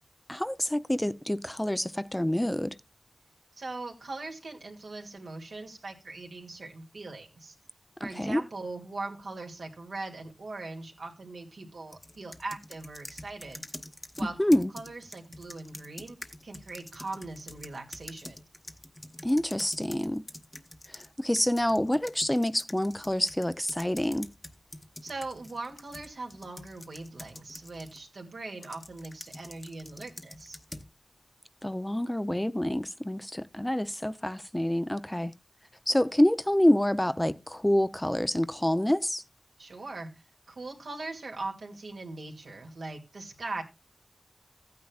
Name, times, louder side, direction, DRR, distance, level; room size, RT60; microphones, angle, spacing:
voice 1, 0.3-2.8 8.0-8.4 14.4-14.7 19.2-20.2 20.9-24.3 31.6-35.3 35.9-39.2, left 1 dB, 10° left, 0.5 m, -27 dB
voice 2, 3.6-7.5 8.0-13.6 14.2-16.2 16.4-18.4 25.0-30.6 39.6-40.1 40.5-43.6, right 3 dB, 85° right, 2.4 m, -40 dB
sound 1, 11.9-21.1 21.4-28.0 28.6-30.9, left 1 dB, 30° left, 1.0 m, -46 dB
15.0 x 9.4 x 2.4 m
wide cardioid pair, 55°, 0 cm